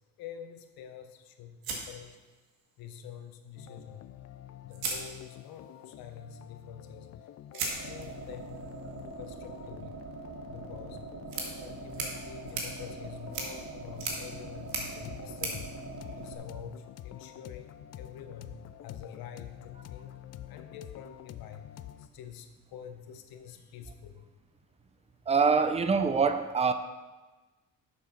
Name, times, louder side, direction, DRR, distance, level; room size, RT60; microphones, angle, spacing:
voice 1, 0.2-2.2 2.8-4.1 4.6-8.5 9.2-10.0 10.5-11.0 11.6-15.7 16.2-20.2 20.5-24.2, left 8 dB, 80° left, 6 dB, 1.1 m, -47 dB
sound 1, 1.6-2.8 4.1-4.2 4.7-5.7 7.5-16.7, right 4 dB, 80° right, 2.0 m, -40 dB
sound 2, 3.6-22.1, left 12 dB, 50° left, 0.5 m, -48 dB
sound 3, 7.7-16.3, right 4 dB, 40° right, 1.2 m, -43 dB
voice 2, 25.3-26.7, right 5 dB, 20° right, 10 dB, 0.6 m, -24 dB
7.6 x 6.7 x 5.9 m, 1.2 s
cardioid pair, 115°, 35 cm